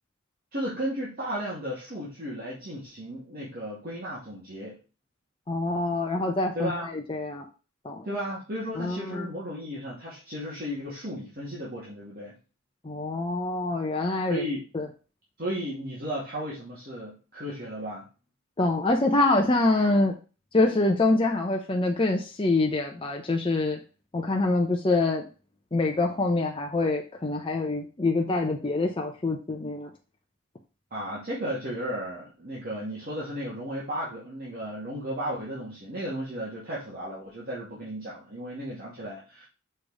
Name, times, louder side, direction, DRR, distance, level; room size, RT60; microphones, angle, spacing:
voice 1, 0.5-4.8 6.5-6.9 8.0-12.3 14.3-14.6 15.4-18.1 30.9-39.5, equal, 45° right, -7 dB, 2.3 m, -34 dB
voice 2, 5.5-7.5 7.8-8.1 8.8-9.3 12.8-14.4 14.7-14.9 18.6-20.2 20.5-23.8 24.1-25.2 25.7-29.9, left 2 dB, 25° left, 1 dB, 0.7 m, -25 dB
6.5 x 4.5 x 4.8 m, 0.34 s
head